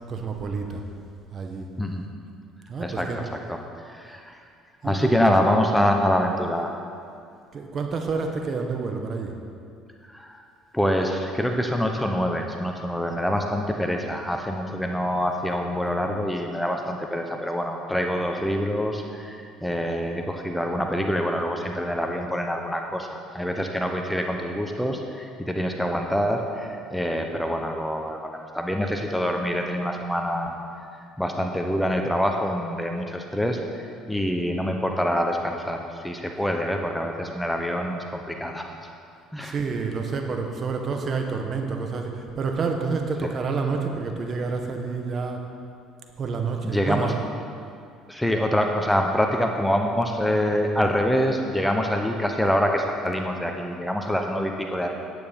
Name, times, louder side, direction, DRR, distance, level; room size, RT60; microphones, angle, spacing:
voice 1, 0.1-0.8 1.3-1.7 2.7-3.2 4.8-5.2 7.5-9.3 39.4-45.4 46.2-47.1 54.0-54.2, right 4 dB, 45° right, 3 dB, 1.5 m, -29 dB
voice 2, 2.8-3.6 3.8-4.5 4.8-6.7 10.1-10.4 10.7-30.5 31.0-38.7 39.3-39.6 43.2-43.3 46.6-47.1 48.1-54.9, equal, 5° left, 3 dB, 1.1 m, -25 dB
10.0 x 9.2 x 5.4 m, 2.4 s
supercardioid pair, 75°, 0 cm